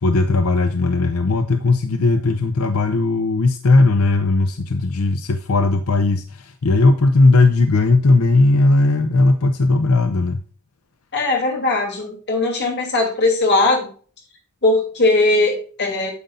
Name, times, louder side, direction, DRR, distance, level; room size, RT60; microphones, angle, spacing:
voice 1, 0.0-10.4, left 3 dB, 85° left, 8 dB, 0.7 m, -17 dB
voice 2, 11.1-13.8 14.6-16.1, left 2 dB, 50° left, 1 dB, 2.9 m, -19 dB
9.5 x 6.9 x 2.5 m, 0.43 s
head